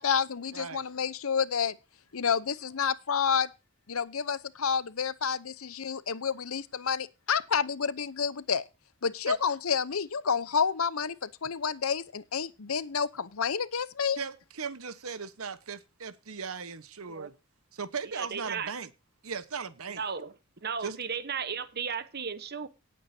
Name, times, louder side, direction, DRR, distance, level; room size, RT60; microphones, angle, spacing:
voice 1, 0.0-1.8 2.1-3.5 3.9-8.6 9.0-14.2, left 6 dB, 80° left, 0.8 m, -29 dB
voice 2, 0.5-0.8 9.3-9.4 14.2-17.3 17.7-18.9 19.2-20.0 20.8-21.0, right 5 dB, 90° right, 1.1 m, -37 dB
voice 3, 18.1-18.7 19.9-20.3 20.6-22.7, right 6 dB, 50° right, 1.1 m, -35 dB
18.0 x 8.5 x 2.8 m
head